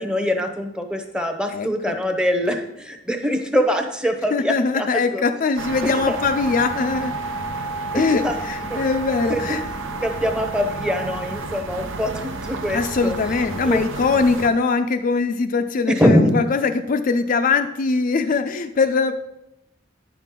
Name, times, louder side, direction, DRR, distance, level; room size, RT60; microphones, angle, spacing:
voice 1, 0.0-4.9 5.1-5.2 5.8-6.2 7.9-8.4 8.7-8.8 9.3-9.6 10.0-13.1 13.7-13.8 15.9-16.4, equal, 5° right, 4 dB, 0.7 m, -23 dB
voice 2, 1.5-2.0 4.3-7.2 7.9-9.6 12.7-19.1, left 4 dB, 45° left, 7 dB, 0.4 m, -21 dB
sound 1, 5.6-14.5, right 3 dB, 85° right, 0.8 m, -30 dB
9.5 x 5.8 x 3.7 m, 0.87 s
head